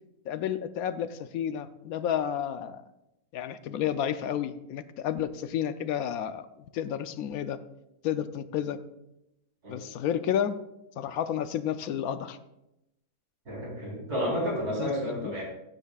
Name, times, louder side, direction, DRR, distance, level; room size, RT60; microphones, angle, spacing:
voice 1, 0.3-2.8 3.3-7.6 8.0-8.8 9.7-10.6 11.0-12.4 14.8-15.3, left 9 dB, 75° left, 12 dB, 1.1 m, -31 dB
voice 2, 13.5-15.4, equal, 85° right, -3 dB, 4.4 m, -31 dB
15.0 x 9.1 x 2.4 m, 0.89 s
omnidirectional pair, 1.6 m